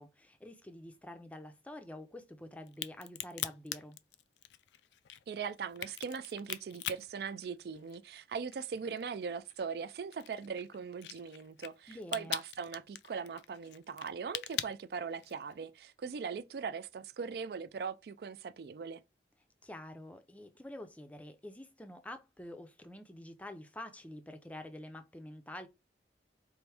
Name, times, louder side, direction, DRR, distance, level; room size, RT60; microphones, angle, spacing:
voice 1, 0.0-4.0 11.9-12.4 19.6-25.7, left 1 dB, 10° left, 0.4 m, -47 dB
Crack, 2.7-8.2 8.5-15.5, left 12 dB, 75° left, 0.3 m, -42 dB
voice 2, 5.3-19.0, right 6 dB, 60° right, 0.3 m, -40 dB
4.5 x 2.6 x 3.3 m
head